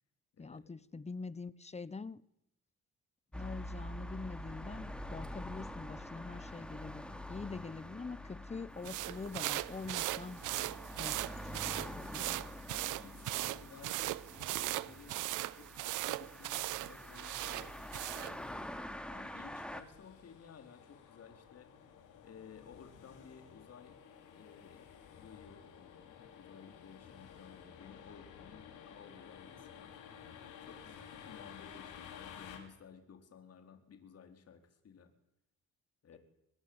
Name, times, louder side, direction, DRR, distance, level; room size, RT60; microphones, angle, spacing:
voice 1, 0.4-2.2 3.3-10.4 10.9-12.4, left 4 dB, 20° left, 1.1 m, -45 dB
sound 1, 3.3-19.8, left 1 dB, 5° left, 2.9 m, -46 dB
sound 2, 8.8-18.4, right 17 dB, 90° right, 0.8 m, -39 dB
voice 2, 12.7-15.2 15.6-17.9 18.1-18.7 19.1-21.9 22.2-24.0 24.3-24.8 25.1-35.1 36.0-36.2, left 6 dB, 55° left, 4.4 m, -56 dB
sound 3, 18.4-32.6, left 8 dB, 85° left, 5.5 m, -54 dB
24.0 x 20.5 x 9.0 m
cardioid pair, 90°, 30 cm